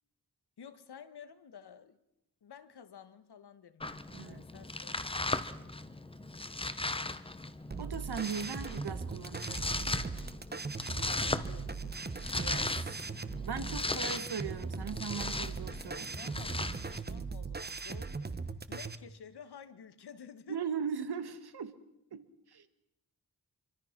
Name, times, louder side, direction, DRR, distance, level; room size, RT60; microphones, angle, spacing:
voice 1, 0.6-2.0 2.4-5.1 11.0-12.0 15.9-18.4 18.7-20.6, left 7 dB, 90° left, 1.6 m, -52 dB
Domestic sounds home sounds, 3.8-17.0, left 2 dB, 15° left, 1.0 m, -38 dB
voice 2, 4.1-4.4 7.8-9.7 12.3-13.0 13.4-16.1 20.5-21.8 22.1-22.7, right 6 dB, 80° right, 1.9 m, -39 dB
sound 1, 7.7-19.0, right 4 dB, 25° right, 1.0 m, -39 dB
25.5 x 24.5 x 6.0 m
wide cardioid pair, 150°, 38 cm